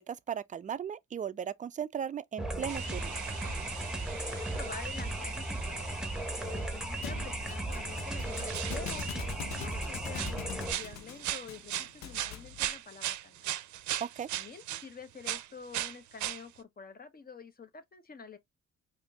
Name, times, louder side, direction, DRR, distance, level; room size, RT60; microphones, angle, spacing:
voice 1, 0.0-3.1 14.0-14.3, right 8 dB, 25° right, 0.4 m, -37 dB
sound 1, 2.4-10.7, right 1 dB, ahead, 1.1 m, -36 dB
sound 2, 2.7-14.9 15.2-16.4, right 13 dB, 70° right, 0.6 m, -40 dB
voice 2, 4.1-5.9 6.4-13.5 14.3-18.4, left 5 dB, 30° left, 0.9 m, -48 dB
Thump thud, 7.0-12.6, left 12 dB, 65° left, 0.5 m, -44 dB
5.0 x 2.7 x 2.3 m
cardioid pair, 90°, 30 cm